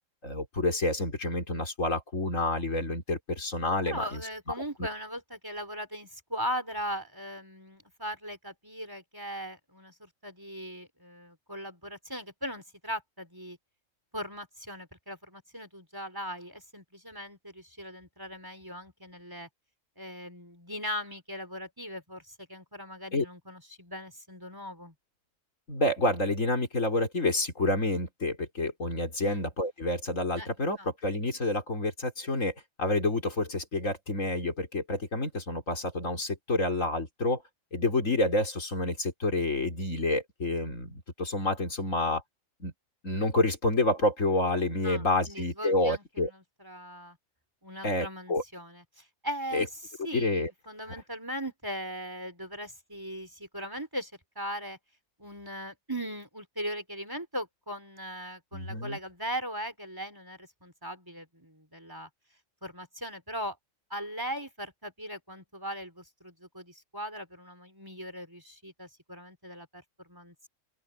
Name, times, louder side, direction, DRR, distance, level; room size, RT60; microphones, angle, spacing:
voice 1, 0.2-4.2 23.1-23.3 25.7-32.5 32.8-37.4 37.7-42.2 42.6-42.7 43.0-46.3 47.8-48.4 49.5-49.7 50.1-50.5 58.5-59.0, left 2 dB, 75° left, 4.3 m, -28 dB
voice 2, 3.9-13.6 14.1-19.5 20.0-24.9 29.2-29.5 30.4-30.5 30.8-30.9 44.8-47.2 47.6-49.7 50.0-54.8 55.2-62.1 62.6-63.6 63.9-70.5, equal, 15° right, 4.0 m, -39 dB
open air
omnidirectional pair, 1.4 m